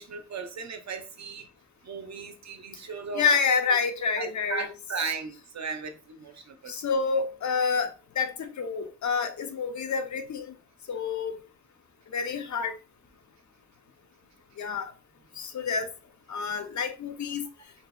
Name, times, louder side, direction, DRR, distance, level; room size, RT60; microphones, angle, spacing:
voice 1, 0.0-1.4 1.8-3.4 3.7-3.8 4.2-6.7, right 5 dB, 70° right, 0.5 m, -36 dB
voice 2, 3.1-4.7 6.7-10.5 10.9-11.3 12.1-12.7 14.6-14.9 15.4-15.9 16.3-17.5, left 5 dB, 75° left, 0.5 m, -28 dB
2.7 x 2.0 x 2.2 m
wide cardioid pair, 90°, 29 cm